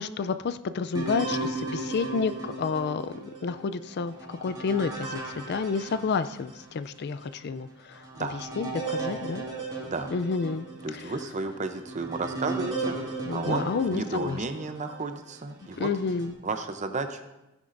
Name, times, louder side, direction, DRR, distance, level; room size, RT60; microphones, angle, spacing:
voice 1, 0.0-9.4 10.1-10.7 10.9-11.0 13.3-14.4 15.8-16.4, left 5 dB, 50° left, 12 dB, 0.4 m, -30 dB
sound 1, 0.9-6.7 7.2-7.3 7.9-15.1 15.7-16.3, right 3 dB, 20° right, 2.0 m, -36 dB
voice 2, 9.8-10.1 10.8-15.9 16.4-17.2, right 3 dB, 35° right, 7 dB, 0.6 m, -33 dB
15.5 x 9.7 x 2.6 m, 0.94 s
head